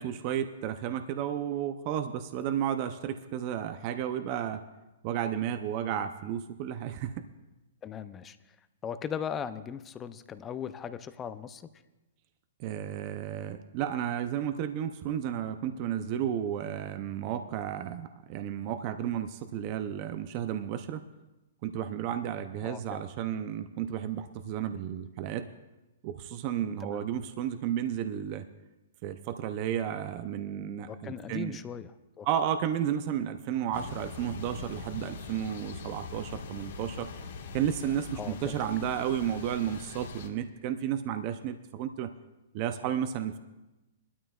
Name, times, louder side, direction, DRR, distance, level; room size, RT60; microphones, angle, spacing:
voice 1, 0.0-4.6 5.0-7.1 12.6-21.0 21.6-25.5 26.0-28.5 29.0-31.6 32.2-37.1 37.5-42.1 42.5-43.4, right 10 dB, 40° right, 9 dB, 0.5 m, -32 dB
voice 2, 7.8-8.4 8.8-11.6 22.6-23.0 26.8-27.1 30.9-31.9 32.2-32.3 38.1-38.6, left 8 dB, 20° left, 12 dB, 0.5 m, -38 dB
sound 1, 33.7-40.3, left 4 dB, 70° left, 1.6 m, -42 dB
21.0 x 12.5 x 2.4 m, 1.0 s
hypercardioid pair, 145°, 0 cm